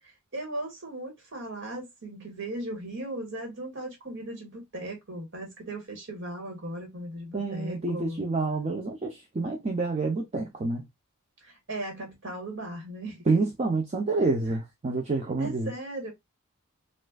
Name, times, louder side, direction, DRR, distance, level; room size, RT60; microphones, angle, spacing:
voice 1, 0.0-8.2 11.4-13.3 15.4-16.1, right 1 dB, 60° right, 1.7 m, -37 dB
voice 2, 7.3-10.9 13.3-15.7, right 3 dB, 30° right, 0.5 m, -28 dB
4.3 x 2.5 x 2.2 m
head